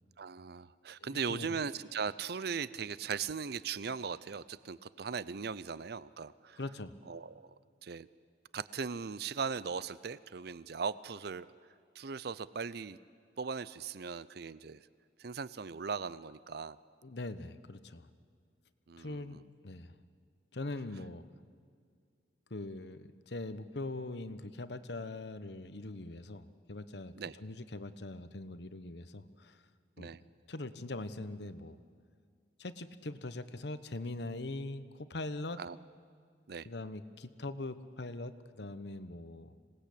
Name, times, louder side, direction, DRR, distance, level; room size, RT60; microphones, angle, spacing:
voice 1, 0.2-6.6 7.1-7.5 7.8-8.1 8.5-11.5 12.0-13.0 13.4-14.8 15.2-16.8 18.9-19.4 27.2-27.3 30.0-30.2 35.6-35.8 36.5-36.7, right 5 dB, 60° right, 17 dB, 0.6 m, -39 dB
voice 2, 1.0-1.6 6.6-7.0 17.0-18.1 19.0-20.0 20.5-21.2 22.5-29.6 30.0-30.1 30.5-31.8 32.6-35.6 36.6-39.5, left 2 dB, 65° left, 12 dB, 1.1 m, -42 dB
26.5 x 19.0 x 8.5 m, 2.1 s
head